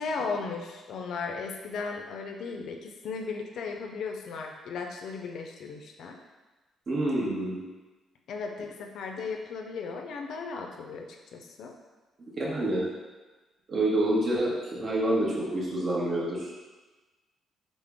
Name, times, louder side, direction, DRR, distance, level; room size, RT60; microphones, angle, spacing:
voice 1, 0.0-6.2 8.3-11.8, left 4 dB, 70° left, 3 dB, 0.4 m, -36 dB
voice 2, 6.9-7.6 12.3-12.9 13.7-16.5, right 1 dB, 45° right, -4 dB, 0.9 m, -27 dB
3.6 x 2.0 x 3.5 m, 1.2 s
cardioid pair, 90°, 0 cm